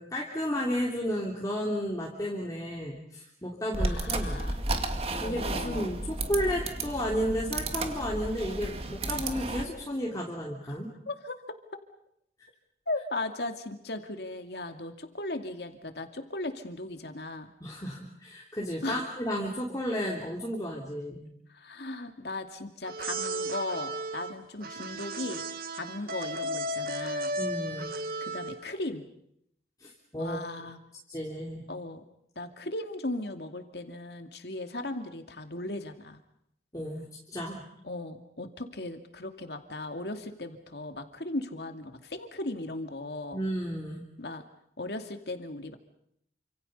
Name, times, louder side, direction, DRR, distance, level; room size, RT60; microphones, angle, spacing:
voice 1, 0.0-4.4 5.2-10.9 17.6-21.3 27.4-27.9 29.8-30.7 31.1-31.6 36.7-37.6 43.3-44.0, equal, 20° left, -3 dB, 3.3 m, -33 dB
sound 1, 3.7-9.7, right 2 dB, 35° right, 2.3 m, -33 dB
voice 2, 3.8-4.6 5.2-5.9 11.1-11.6 12.9-17.5 18.8-19.1 21.5-25.4 25.7-27.4 28.2-29.1 30.2-30.8 31.7-32.0 32.4-36.2 37.8-43.4 44.2-44.4 44.8-45.8, left 2 dB, 70° left, 6 dB, 2.4 m, -37 dB
sound 2, 22.8-28.7, right 1 dB, 55° right, 1.8 m, -34 dB
29.0 x 26.5 x 5.5 m, 0.74 s
head